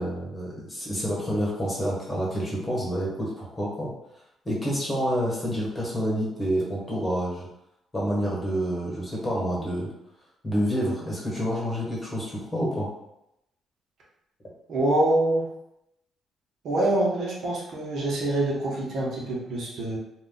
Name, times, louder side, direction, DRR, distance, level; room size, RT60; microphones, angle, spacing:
voice 1, 0.0-3.9 4.4-7.5 7.9-9.9 10.4-12.9, equal, 20° left, -5 dB, 1.4 m, -28 dB
voice 2, 14.7-15.4 16.6-20.0, right 1 dB, 70° right, -4 dB, 0.9 m, -25 dB
2.4 x 2.4 x 3.9 m, 0.85 s
cardioid pair, 90°, 0 cm